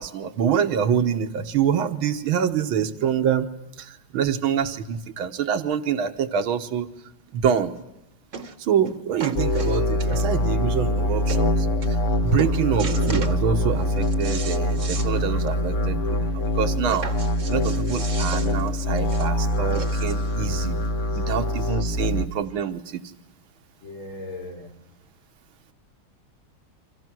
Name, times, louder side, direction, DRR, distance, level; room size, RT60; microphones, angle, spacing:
voice 1, 0.0-3.5 3.8-6.9 7.3-7.7 8.6-11.7 12.2-17.1 17.5-20.9 21.1-23.0, right 8 dB, 80° right, 8 dB, 2.0 m, -26 dB
sound 1, 7.6-7.7 8.3-8.6 8.8-10.5 11.0-11.1 11.3-11.5 11.8-12.1 12.4-13.4 13.8-15.1 15.5-15.6 15.9-16.0 16.9-20.3 21.2-21.3, right 5 dB, 40° right, 1.4 m, -35 dB
sound 2, 9.4-22.3, left 1 dB, 45° left, 1.2 m, -24 dB
voice 2, 23.8-24.7, left 2 dB, 70° left, -1 dB, 5.6 m, -39 dB
30.0 x 25.5 x 6.2 m, 0.87 s
omnidirectional pair, 2.3 m